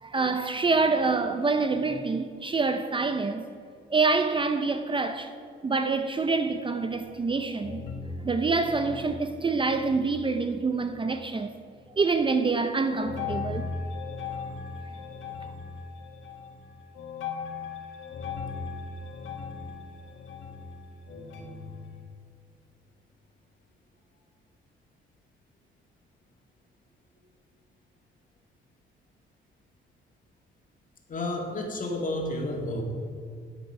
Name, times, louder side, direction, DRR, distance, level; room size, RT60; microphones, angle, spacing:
voice 1, 0.0-3.4 3.9-5.3 5.6-7.8 8.2-11.5 12.0-13.7, right 4 dB, 25° right, 0.6 m, -26 dB
sound 1, 6.3-7.3 7.6-11.4 11.7-12.3 12.9-22.0, left 4 dB, 80° left, 1.8 m, -39 dB
voice 2, 31.1-32.8, left 1 dB, 40° left, 2.2 m, -31 dB
10.0 x 8.2 x 5.9 m
cardioid pair, 90°, 20 cm